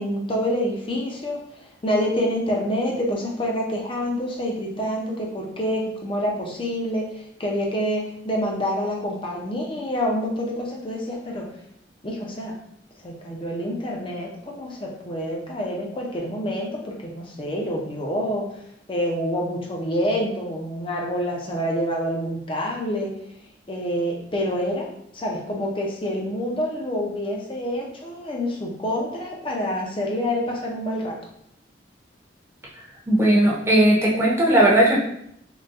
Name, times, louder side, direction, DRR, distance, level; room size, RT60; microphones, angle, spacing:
voice 1, 0.0-11.5 12.0-12.5 13.0-18.4 18.9-23.1 23.7-24.9 25.1-31.1, equal, 30° left, -1 dB, 0.6 m, -27 dB
voice 2, 33.1-35.0, right 1 dB, 15° right, -4 dB, 0.7 m, -17 dB
3.7 x 2.2 x 2.5 m, 0.72 s
head